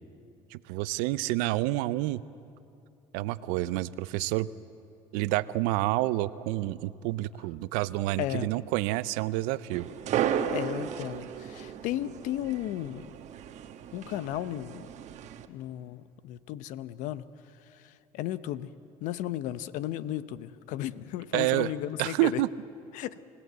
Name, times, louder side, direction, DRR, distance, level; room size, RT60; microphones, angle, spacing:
voice 1, 0.5-2.2 3.1-4.5 5.1-9.9 21.3-21.7 22.0-22.5, right 17 dB, 90° right, 17 dB, 0.6 m, -28 dB
voice 2, 8.2-8.5 10.5-13.1 13.9-14.9 15.5-17.2 17.7-18.7 19.0-22.4 22.9-23.2, left 13 dB, 75° left, 15 dB, 0.8 m, -34 dB
sound 1, 9.7-15.5, right 9 dB, 60° right, 1.3 m, -34 dB
29.5 x 17.0 x 8.1 m, 2.6 s
supercardioid pair, 90°, 13 cm